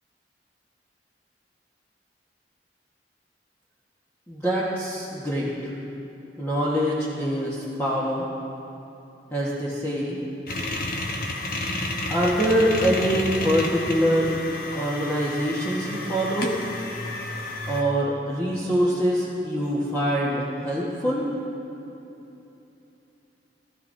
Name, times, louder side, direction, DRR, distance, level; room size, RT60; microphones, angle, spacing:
voice 1, 4.3-5.7 6.4-8.2 9.3-10.2 12.1-14.4 14.7-16.6 17.7-21.2, equal, 15° left, -8 dB, 1.3 m, -24 dB
sound 1, 10.5-17.8, left 2 dB, 50° left, 1.1 m, -31 dB
19.5 x 13.5 x 2.7 m, 3.0 s
head